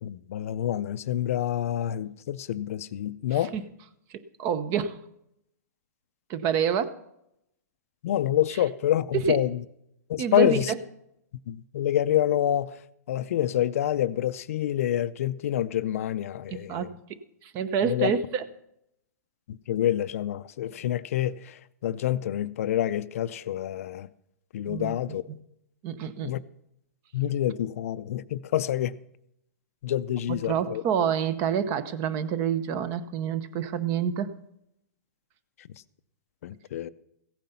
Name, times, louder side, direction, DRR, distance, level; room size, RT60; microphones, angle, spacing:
voice 1, 0.0-3.5 8.0-9.6 10.1-10.7 11.5-12.7 13.1-16.9 17.9-18.1 19.5-24.1 24.5-25.3 26.2-26.4 27.1-29.0 29.8-30.8 36.4-36.9, left 11 dB, 55° left, 0.5 m, -27 dB
voice 2, 3.3-3.6 4.1-5.0 6.3-7.0 9.2-9.4 10.2-10.8 16.5-16.9 17.4-18.5 24.7-25.0 25.3-25.4 25.8-26.3 30.3-34.3, right 8 dB, 30° right, 0.8 m, -28 dB
16.0 x 9.3 x 5.6 m
hypercardioid pair, 155°, 9 cm